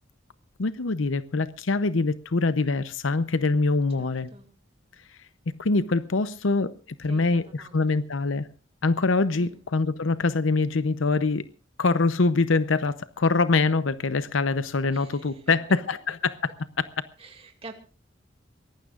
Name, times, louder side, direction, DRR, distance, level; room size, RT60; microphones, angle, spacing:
voice 1, 0.6-4.3 5.1-5.2 5.6-6.7 7.0-8.5 8.8-11.5 11.8-16.5, left 3 dB, 90° left, 0.7 m, -24 dB
voice 2, 4.0-4.5 6.1-6.4 7.0-8.0 9.4-9.6 14.9-15.5 17.2-17.8, right 3 dB, 30° right, 2.4 m, -47 dB
23.5 x 18.0 x 2.5 m
head